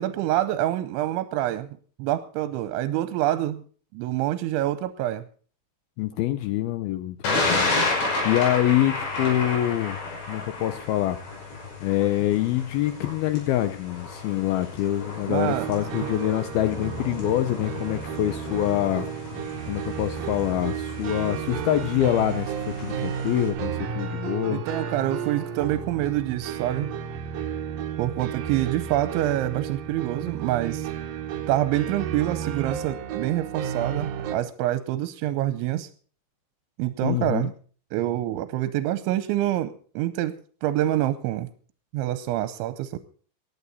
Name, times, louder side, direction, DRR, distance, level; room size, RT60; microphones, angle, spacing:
voice 1, 0.0-1.7 2.0-3.6 3.9-5.2 15.3-15.7 16.0-16.1 24.5-26.9 28.0-30.9 31.5-35.9 36.8-37.5 37.9-41.5 41.9-43.0, right 14 dB, 85° right, 13 dB, 3.1 m, -26 dB
voice 2, 6.0-7.7 8.2-10.0 10.3-11.2 11.8-19.1 19.7-24.6 37.0-37.5, left 13 dB, 85° left, 11 dB, 2.1 m, -25 dB
Thunder, 7.2-23.5, left 3 dB, 65° left, 7.8 m, -32 dB
sound 1, 15.5-34.4, right 8 dB, 60° right, 2.7 m, -33 dB
19.5 x 12.0 x 4.1 m, 0.42 s
omnidirectional pair, 5.3 m